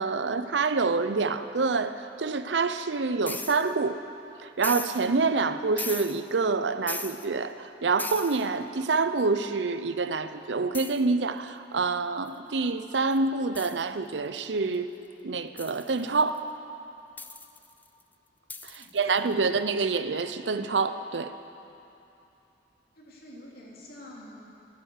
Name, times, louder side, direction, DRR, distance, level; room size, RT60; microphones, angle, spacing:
voice 1, 0.0-4.0 4.4-14.9 15.2-16.5 18.6-21.3, right 4 dB, 85° right, 11 dB, 0.6 m, -27 dB
sound 1, 3.3-3.7 4.6-5.1 5.8-6.3 6.9-7.3 8.0-8.5 10.7-11.0 12.3-12.4 13.1-13.2 13.5-13.8 15.6-16.4 17.2-18.0 18.5-19.3, left 4 dB, 10° left, 0.4 m, -38 dB
voice 2, 18.8-19.5 23.0-24.4, left 1 dB, 60° left, -4 dB, 3.1 m, -48 dB
14.5 x 12.5 x 6.5 m, 2.8 s
head